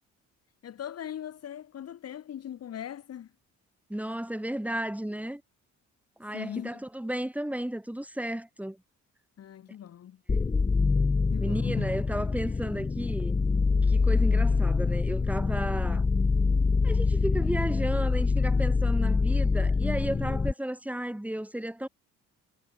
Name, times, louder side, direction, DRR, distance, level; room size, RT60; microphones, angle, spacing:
voice 1, 0.6-3.3 6.3-6.8 9.4-10.2 11.3-11.9, left 10 dB, 55° left, 1.2 m, -40 dB
voice 2, 3.9-5.4 6.2-8.8 10.3-10.5 11.4-13.4 13.8-16.0 16.8-21.9, right 1 dB, 5° right, 4.4 m, -33 dB
sound 1, 10.3-20.5, left 4 dB, 15° left, 0.5 m, -25 dB
cardioid pair, 90°, 30 cm